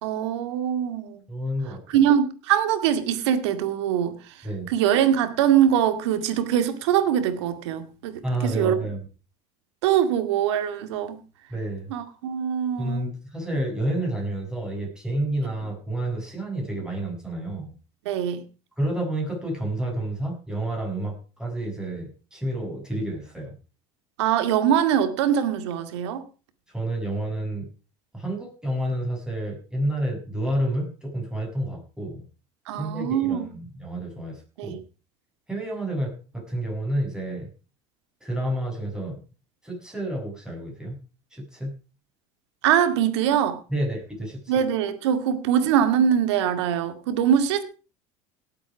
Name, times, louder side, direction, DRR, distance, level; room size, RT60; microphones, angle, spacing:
voice 1, 0.0-1.2 1.9-8.8 9.8-11.2 11.9-13.1 18.1-18.4 24.2-26.2 32.7-33.5 34.6-34.8 42.6-43.6 44.5-47.6, right 9 dB, 90° right, 2.2 m, -23 dB
voice 2, 1.3-2.0 4.4-4.7 8.2-9.0 11.5-11.9 12.8-17.7 18.8-23.5 26.7-27.7 28.1-32.2 32.7-34.8 35.5-37.5 38.2-39.2 39.6-41.0 41.3-41.8 43.7-44.5, right 1 dB, 5° right, 6.4 m, -29 dB
18.0 x 8.3 x 4.9 m
supercardioid pair, 120°, 14 cm